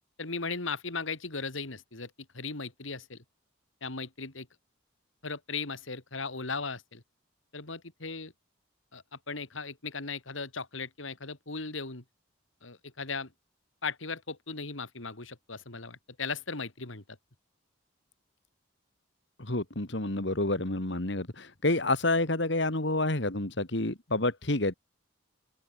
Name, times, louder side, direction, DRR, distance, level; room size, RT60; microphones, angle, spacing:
voice 1, 0.2-3.2 3.8-4.5 5.2-7.0 7.5-8.3 8.9-12.0 12.6-13.3 13.8-17.0, left 4 dB, 80° left, 2.9 m, -37 dB
voice 2, 19.4-24.7, left 2 dB, 60° left, 2.5 m, -29 dB
open air
head